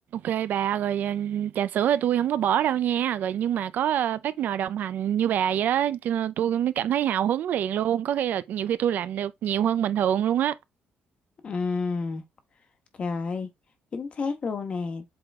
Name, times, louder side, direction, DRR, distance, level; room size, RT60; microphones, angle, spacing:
voice 1, 0.1-10.5, right 10 dB, 65° right, 0.5 m, -25 dB
voice 2, 11.4-12.2 12.9-13.5 13.9-15.0, left 4 dB, 35° left, 1.4 m, -30 dB
7.8 x 3.8 x 3.5 m
cardioid pair, 145°, 3 cm